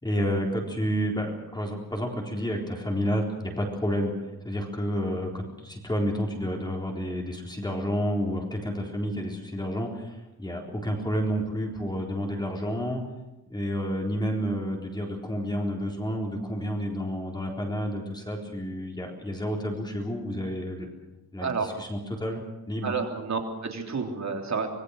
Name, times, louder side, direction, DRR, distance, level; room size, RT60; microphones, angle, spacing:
voice 1, 0.0-4.1 4.4-13.0 13.5-20.9 21.3-22.4 22.7-22.9, equal, 10° left, 0 dB, 4.0 m, -30 dB
voice 2, 22.8-24.7, right 5 dB, 50° right, 3 dB, 3.4 m, -30 dB
26.0 x 21.0 x 6.5 m, 0.92 s
wide cardioid pair, 175°, 37 cm